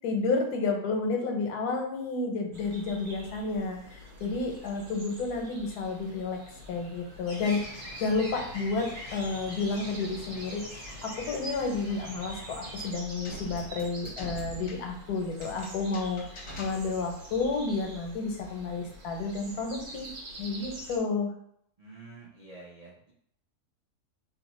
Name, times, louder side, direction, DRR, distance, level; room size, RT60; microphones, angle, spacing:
voice 1, 0.0-6.4 6.7-20.1 20.4-21.3, left 3 dB, 85° left, 3 dB, 1.2 m, -31 dB
sound 1, 2.5-21.0, right 1 dB, 70° right, 1.2 m, -45 dB
sound 2, 7.3-12.9, equal, 25° left, 0.7 m, -44 dB
sound 3, 13.2-17.3, equal, 50° left, 1.2 m, -44 dB
voice 2, 21.8-23.1, right 3 dB, 85° right, -5 dB, 0.3 m, -48 dB
2.8 x 2.1 x 4.0 m, 0.69 s
omnidirectional pair, 1.6 m